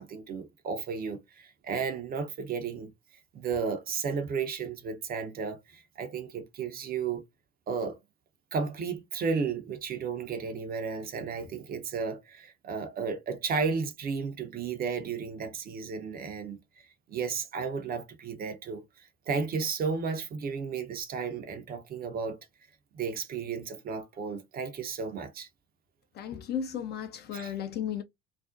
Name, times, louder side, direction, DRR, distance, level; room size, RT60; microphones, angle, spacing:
voice 1, 0.0-2.9 3.3-7.2 7.7-8.0 8.5-16.6 17.1-22.4 22.9-25.5 27.3-27.5, right 5 dB, 30° right, 0.6 m, -33 dB
voice 2, 26.2-28.0, left 8 dB, 30° left, 0.4 m, -34 dB
2.5 x 2.1 x 2.4 m
figure-of-eight pair, 70°, 33 cm